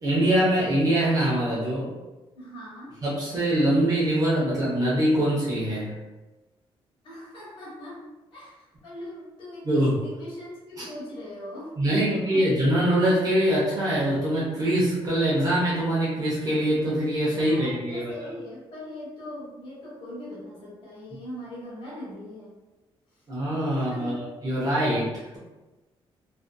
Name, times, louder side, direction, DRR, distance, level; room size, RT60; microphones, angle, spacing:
voice 1, 0.0-1.9 3.0-5.9 9.6-10.0 10.8-10.9 11.8-18.1 23.3-25.4, right 1 dB, 40° right, -6 dB, 0.7 m, -23 dB
voice 2, 2.3-2.9 7.0-8.0 8.3-12.4 17.3-22.6 23.7-24.2, left 1 dB, 60° left, -8 dB, 1.1 m, -40 dB
2.5 x 2.5 x 2.2 m, 1.1 s
cardioid pair, 135°, 10 cm